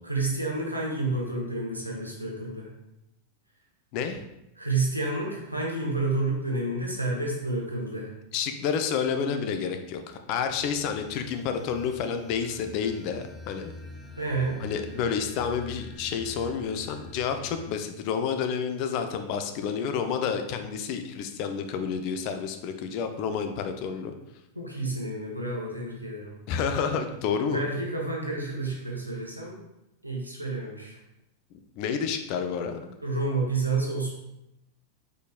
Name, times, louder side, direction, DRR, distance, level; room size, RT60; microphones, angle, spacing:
voice 1, 0.0-2.7 4.6-8.1 14.2-14.6 24.5-26.3 27.4-29.6 30.0-31.0 33.0-34.1, right 2 dB, 85° right, -2 dB, 1.0 m, -30 dB
voice 2, 3.9-4.2 8.3-13.7 14.6-24.1 26.5-27.6 31.8-33.0, left 6 dB, 45° left, 7 dB, 0.4 m, -29 dB
sound 1, 10.5-17.7, left 3 dB, 10° left, 0.7 m, -45 dB
5.1 x 4.1 x 2.4 m, 0.88 s
figure-of-eight pair, 90°, 0 cm